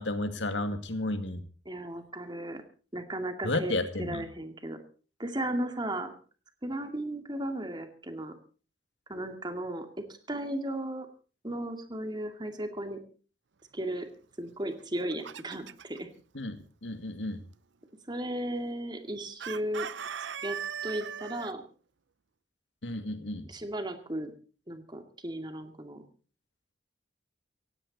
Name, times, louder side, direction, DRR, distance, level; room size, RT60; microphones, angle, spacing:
voice 1, 0.0-1.4 3.4-4.2 16.3-17.4 22.8-23.5, left 2 dB, 90° left, 8 dB, 2.1 m, -32 dB
voice 2, 1.7-2.6 2.9-4.8 5.2-6.1 6.6-8.3 9.1-11.1 11.4-13.0 13.7-14.1 14.4-16.1 18.1-19.9 20.4-20.6 20.8-21.6 23.5-24.3 24.7-26.0, right 1 dB, 25° right, 6 dB, 2.3 m, -35 dB
Chicken rooster, 14.8-16.0 19.4-21.5, right 8 dB, 90° right, 0.7 m, -38 dB
17.0 x 17.0 x 4.1 m, 0.38 s
head